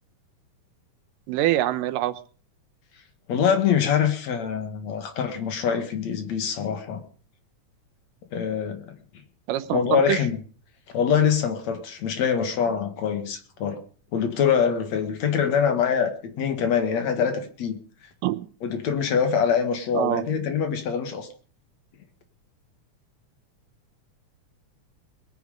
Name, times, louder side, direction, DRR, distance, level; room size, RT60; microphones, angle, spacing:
voice 1, 1.3-2.1 9.5-10.2 18.2-18.5 19.9-20.2, right 14 dB, 90° right, 12 dB, 2.5 m, -24 dB
voice 2, 3.3-7.0 8.3-8.9 9.7-10.4 10.9-13.8 14.1-17.8 18.6-21.3, left 7 dB, 60° left, 8 dB, 2.9 m, -24 dB
21.5 x 9.4 x 5.1 m, 0.42 s
omnidirectional pair, 3.7 m